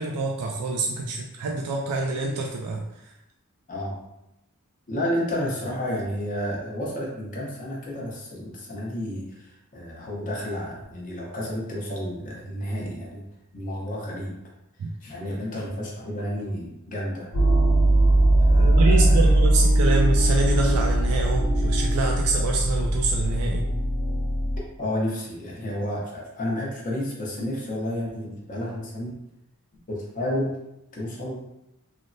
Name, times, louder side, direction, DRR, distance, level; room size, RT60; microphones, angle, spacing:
voice 1, 0.0-2.8 14.8-14.9 18.6-23.7, right 3 dB, 80° right, 1 dB, 0.3 m, -26 dB
voice 2, 4.9-13.2 13.5-14.4 15.0-17.3 18.5-19.2 24.8-29.1 29.9-30.6 30.9-31.4, left 1 dB, 35° left, -3 dB, 0.7 m, -31 dB
sound 1, 17.3-24.6, right 1 dB, 75° left, 1.0 m, -20 dB
3.2 x 2.0 x 2.6 m, 0.88 s
head